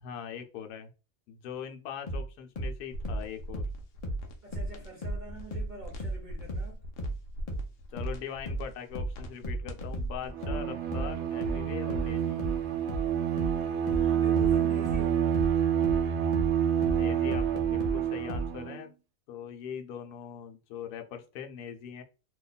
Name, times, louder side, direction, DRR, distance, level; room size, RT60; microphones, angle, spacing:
voice 1, 0.0-0.9 1.3-3.6 7.9-12.4 16.8-18.9 19.3-22.0, left 8 dB, 85° left, 1.2 m, -41 dB
sound 1, 2.1-5.3 5.5-18.5, right 1 dB, 40° left, 0.5 m, -34 dB
sound 2, 2.9-10.3, equal, 65° left, 0.9 m, -43 dB
voice 2, 4.4-6.8 13.9-15.4, right 3 dB, 40° right, 0.7 m, -45 dB
Bowed string instrument, 10.3-18.8, right 9 dB, 70° right, 1.0 m, -28 dB
2.9 x 2.2 x 3.9 m
omnidirectional pair, 1.6 m